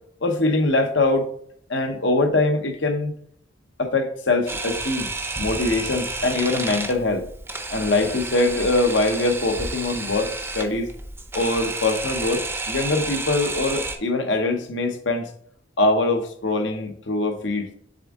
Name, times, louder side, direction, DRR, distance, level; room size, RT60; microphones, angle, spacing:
voice 1, 0.2-1.3 1.7-3.1 3.8-5.1 5.4-7.3 7.7-10.9 11.3-15.3 15.8-17.7, left 2 dB, 70° left, 0.9 m, -23 dB
Camera, 4.5-14.0, right 3 dB, 10° right, 0.6 m, -31 dB
7.5 x 3.5 x 3.6 m
head